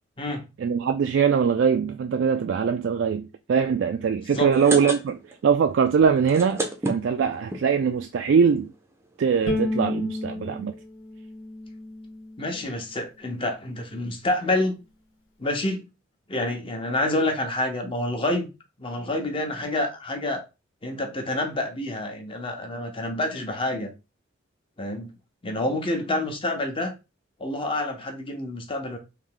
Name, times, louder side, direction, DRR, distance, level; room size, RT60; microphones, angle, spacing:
voice 1, 0.6-8.7 9.2-10.7, right 6 dB, 65° right, 0.3 m, -22 dB
sound 1, 4.3-5.4 5.7-5.8 6.1-7.6 8.3-8.4 8.7-8.8 8.9-9.2, right 1 dB, 15° right, 0.5 m, -30 dB
Bowed string instrument, 9.5-12.7, left 2 dB, 85° left, 1.0 m, -31 dB
voice 2, 12.4-14.8 15.4-15.8 16.3-18.5 18.8-20.4 20.8-23.9 24.8-25.1 25.4-26.9 27.4-29.0, left 1 dB, 25° left, 0.7 m, -28 dB
3.3 x 2.6 x 3.7 m
head